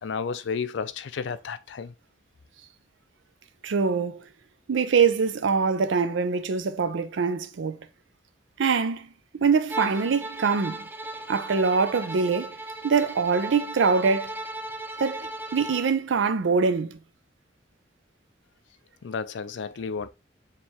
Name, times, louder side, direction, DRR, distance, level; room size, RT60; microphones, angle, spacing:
voice 1, 0.0-1.9 19.0-20.1, left 5 dB, 75° left, 0.4 m, -32 dB
voice 2, 3.6-4.3 4.7-7.8 8.6-9.1 9.3-10.8 11.3-12.5 12.8-14.3 15.0-17.0, right 5 dB, 80° right, 0.5 m, -24 dB
Bowed string instrument, 9.7-15.9, right 1 dB, 10° right, 0.3 m, -36 dB
4.5 x 3.3 x 2.9 m
head